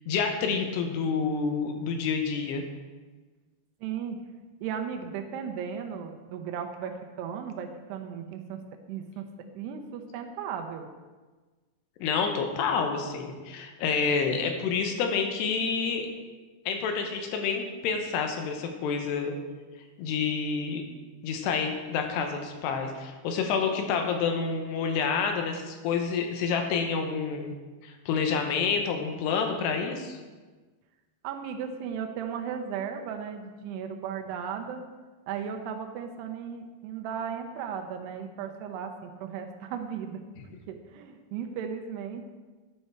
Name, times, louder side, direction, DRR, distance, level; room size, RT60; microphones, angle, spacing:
voice 1, 0.1-2.6 12.0-16.1 16.7-19.3 20.0-20.8 21.2-27.5 27.8-30.2, left 5 dB, 85° left, 4 dB, 2.9 m, -28 dB
voice 2, 3.8-4.2 4.6-8.6 8.9-9.3 9.5-10.9 31.2-34.8 35.3-40.2 40.7-42.2, right 7 dB, 85° right, 5 dB, 2.7 m, -36 dB
11.0 x 5.5 x 4.6 m, 1.3 s
omnidirectional pair, 4.8 m